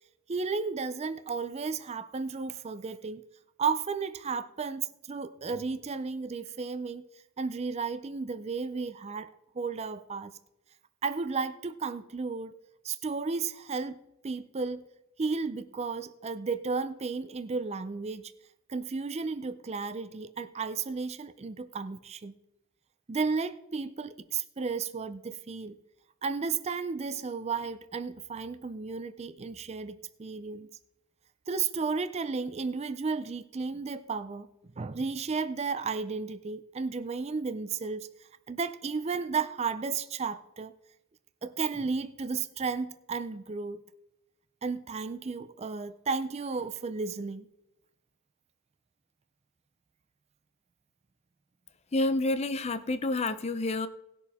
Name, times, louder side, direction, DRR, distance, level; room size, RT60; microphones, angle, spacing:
voice 1, 0.3-3.2 3.6-7.0 7.4-9.3 9.6-10.3 11.0-12.5 12.8-14.0 14.2-14.8 15.2-18.2 18.7-22.4 23.1-25.8 26.2-30.7 31.5-34.5 34.8-38.1 38.5-40.7 41.4-43.8 44.6-47.5, right 4 dB, 30° right, 12 dB, 0.4 m, -33 dB
voice 2, 51.9-53.9, left 2 dB, 30° left, 13 dB, 0.5 m, -28 dB
18.5 x 6.8 x 3.6 m, 0.90 s
head